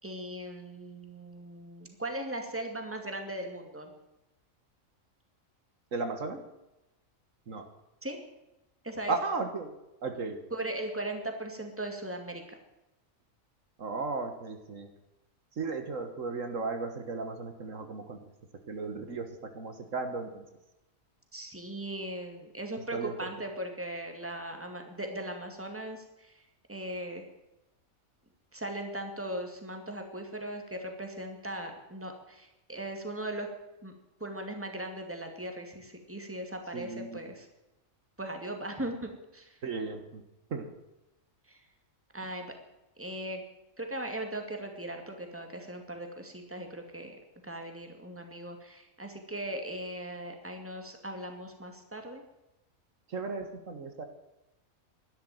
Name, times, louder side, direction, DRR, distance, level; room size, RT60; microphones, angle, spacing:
voice 1, 0.0-3.9 8.0-8.2 8.8-9.1 10.5-12.6 21.3-26.4 26.7-27.3 28.5-33.5 33.8-33.9 34.2-37.5 38.2-39.6 41.5-41.6 42.1-42.5 43.0-43.4 43.8-47.2 47.4-52.2, right 1 dB, 10° right, 4 dB, 2.3 m, -38 dB
voice 2, 5.9-6.5 7.5-7.7 9.1-9.7 10.0-10.4 13.8-14.9 15.6-18.2 18.7-20.4 22.9-23.3 36.7-37.2 39.6-40.2 40.5-40.7 53.1-54.1, right 3 dB, 70° right, 7 dB, 1.9 m, -35 dB
12.0 x 11.5 x 9.1 m, 0.95 s
omnidirectional pair, 1.4 m